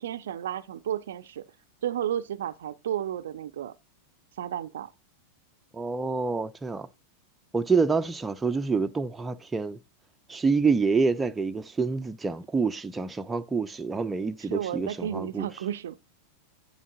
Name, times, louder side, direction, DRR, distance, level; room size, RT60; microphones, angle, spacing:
voice 1, 0.0-1.5 1.8-3.7 4.4-4.9 14.4-16.0, right 10 dB, 60° right, 0.5 m, -32 dB
voice 2, 5.7-6.9 7.5-9.8 10.3-15.5, right 4 dB, 10° right, 0.6 m, -27 dB
11.0 x 8.6 x 2.6 m
figure-of-eight pair, 90°, 0 cm